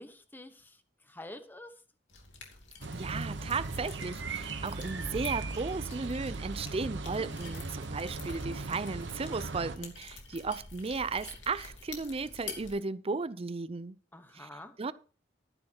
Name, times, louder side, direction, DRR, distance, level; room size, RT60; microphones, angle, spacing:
voice 1, 0.0-1.8 14.1-14.8, left 1 dB, 10° left, 1.1 m, -48 dB
sound 1, 2.1-12.7, left 5 dB, 85° left, 2.7 m, -49 dB
sound 2, 2.8-9.8, right 3 dB, 70° right, 1.0 m, -38 dB
voice 2, 2.9-14.0 14.3-14.5 14.8-14.9, right 4 dB, 35° right, 0.5 m, -35 dB
12.0 x 10.5 x 2.9 m
head